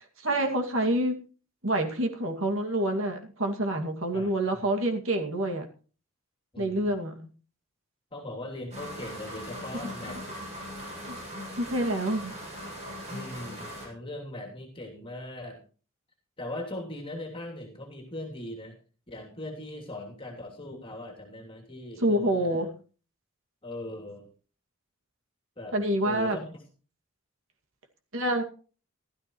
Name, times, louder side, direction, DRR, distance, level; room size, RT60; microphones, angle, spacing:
voice 1, 0.2-1.2 1.6-5.6 6.6-7.2 11.0-11.2 11.6-12.3 22.0-22.7 25.7-26.4 28.1-28.4, right 1 dB, 60° right, 4 dB, 2.2 m, -27 dB
voice 2, 4.1-4.7 6.5-7.0 8.1-10.2 13.1-15.6 16.4-18.7 19.1-22.7 23.6-24.3 25.6-25.8 26.0-26.4, left 1 dB, 25° left, 0 dB, 2.9 m, -40 dB
sound 1, 8.7-13.9, equal, 30° right, 6.6 m, -40 dB
16.0 x 13.0 x 3.1 m, 0.38 s
head